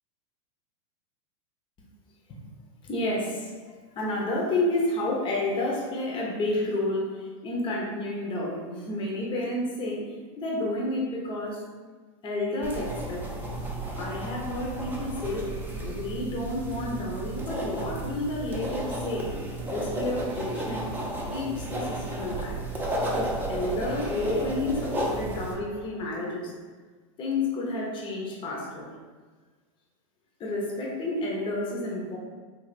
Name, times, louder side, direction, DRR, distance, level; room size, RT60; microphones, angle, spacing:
voice 1, 2.9-10.0 10.4-11.6 12.2-13.5 14.0-19.3 19.6-21.0 21.3-22.6 23.1-26.5 27.2-28.9 30.4-32.2, left 2 dB, 30° left, -3 dB, 0.8 m, -30 dB
sound 1, 12.6-25.5, right 1 dB, 10° right, 0.7 m, -33 dB
3.4 x 2.4 x 4.0 m, 1.4 s
hypercardioid pair, 115°, 16 cm